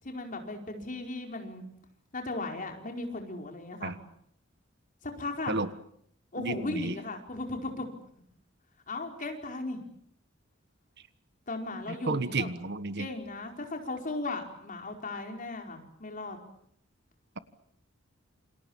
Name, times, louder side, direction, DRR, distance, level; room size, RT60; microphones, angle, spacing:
voice 1, 0.0-1.6 2.1-4.0 5.0-5.6 6.3-7.9 8.9-9.8 11.5-12.5 13.0-16.4, left 2 dB, 40° left, 3 dB, 4.8 m, -36 dB
voice 2, 6.4-6.9 12.0-13.1, right 3 dB, 60° right, 12 dB, 1.5 m, -31 dB
28.5 x 27.0 x 7.3 m, 0.69 s
head